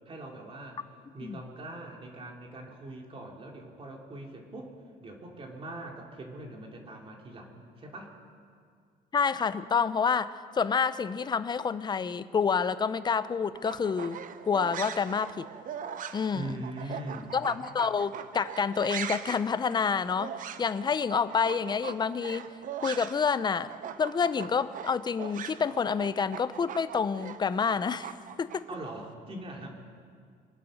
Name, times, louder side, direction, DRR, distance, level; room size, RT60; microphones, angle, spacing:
voice 1, 0.1-0.8 1.1-8.1 16.3-17.3 28.7-29.7, right 1 dB, 35° right, 1 dB, 2.7 m, -42 dB
voice 2, 9.1-10.3 10.5-14.2 14.5-15.5 16.1-16.6 17.3-20.3 20.6-22.5 22.8-23.7 24.0-28.6, left 6 dB, 25° left, 14 dB, 0.6 m, -28 dB
sound 1, 13.5-23.3 23.6-28.6, right 8 dB, 50° right, 0.8 m, -40 dB
23.5 x 8.8 x 6.4 m, 2.2 s
cardioid pair, 110°, 17 cm